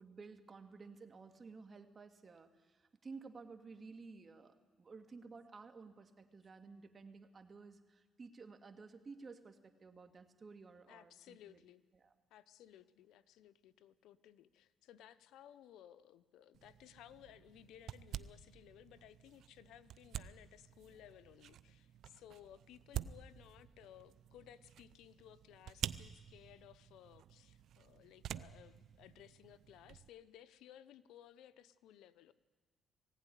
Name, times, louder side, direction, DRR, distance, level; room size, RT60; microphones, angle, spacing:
voice 1, 0.0-11.6 12.0-12.1, right 4 dB, 40° right, 7 dB, 1.9 m, -54 dB
voice 2, 10.9-11.8 12.3-32.3, left 11 dB, 90° left, 14 dB, 0.7 m, -59 dB
sound 1, 16.5-30.1, right 10 dB, 75° right, 0.5 m, -49 dB
19.5 x 16.0 x 10.0 m, 1.3 s
cardioid pair, 90°, 0 cm